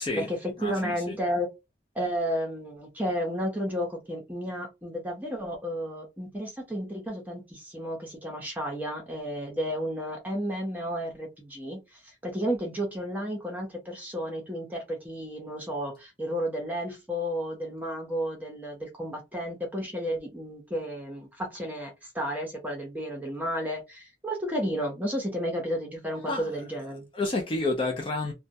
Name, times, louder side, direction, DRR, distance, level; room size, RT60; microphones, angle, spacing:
voice 1, 0.0-1.5 1.9-27.1, equal, 10° right, 0.7 m, -32 dB
voice 2, 0.6-1.2 26.2-26.5 27.1-28.3, left 2 dB, 30° left, 0.4 m, -29 dB
2.2 x 2.1 x 2.6 m
head